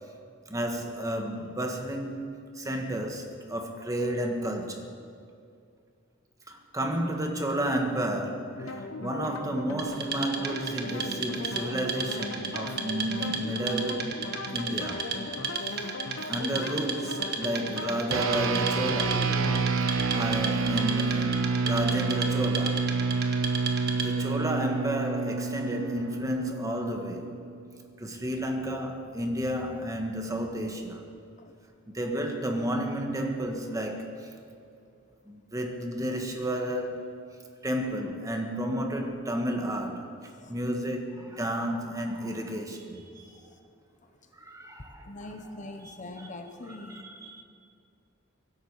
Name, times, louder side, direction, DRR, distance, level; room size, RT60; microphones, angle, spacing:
voice 1, 0.5-4.9 6.5-14.2 14.5-15.1 15.7-15.9 16.3-19.3 20.1-22.9 23.9-27.3 28.0-31.1 31.9-34.3 35.3-37.2 37.6-40.1 40.5-43.2 44.4-46.3 46.6-47.4, right 1 dB, 15° right, 1.5 m, -32 dB
sound 1, 8.6-19.6, left 2 dB, 85° left, 1.3 m, -38 dB
Wood, 9.8-24.3, right 5 dB, 55° right, 1.5 m, -35 dB
sound 2, 18.1-27.7, right 4 dB, 80° right, 0.9 m, -28 dB
voice 2, 45.0-47.1, left 2 dB, 40° left, 1.0 m, -42 dB
23.5 x 12.0 x 4.8 m
head